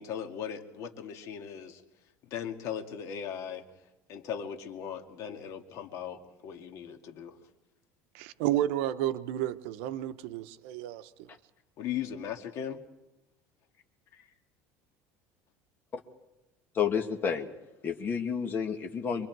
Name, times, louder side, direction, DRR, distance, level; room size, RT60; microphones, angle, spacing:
voice 1, 0.0-1.8 2.3-3.6 4.1-7.3 11.8-12.8 14.1-14.2, left 8 dB, 50° left, 2.0 m, -38 dB
voice 2, 8.1-11.3, right 12 dB, 85° right, 0.9 m, -31 dB
voice 3, 16.7-17.5 17.8-19.3, left 7 dB, 30° left, 1.9 m, -30 dB
25.5 x 22.0 x 4.7 m
cardioid pair, 145°, 7 cm